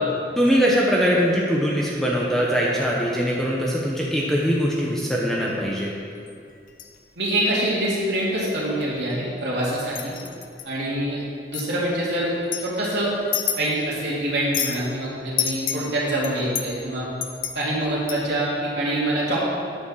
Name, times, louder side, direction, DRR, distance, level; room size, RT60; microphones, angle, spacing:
voice 1, 0.4-5.9, equal, ahead, -4 dB, 0.9 m, -22 dB
sound 1, 4.0-4.3 5.5-5.7 6.3-7.0 7.3-7.5 8.0-8.2 8.5-9.5 9.9-10.6 11.5-11.7 12.3-14.0 14.3-14.9 15.4-18.5, left 8 dB, 50° left, 0.8 m, -30 dB
voice 2, 7.2-10.1 10.7-11.2 11.5-12.3 12.6-13.1 13.6-17.1 17.5-19.4, right 1 dB, 80° right, -8 dB, 2.5 m, -25 dB
8.8 x 7.1 x 6.4 m, 2.4 s
head